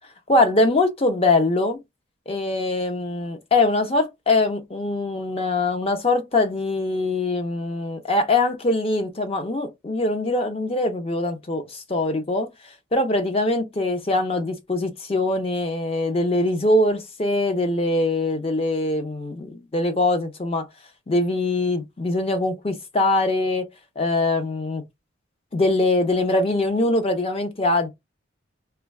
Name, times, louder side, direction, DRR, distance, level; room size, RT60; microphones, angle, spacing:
voice 1, 0.3-1.8 2.3-20.7 21.1-23.7 24.0-24.8 25.5-27.9, left 2 dB, 30° left, 0.5 m, -22 dB
2.3 x 2.2 x 3.3 m
head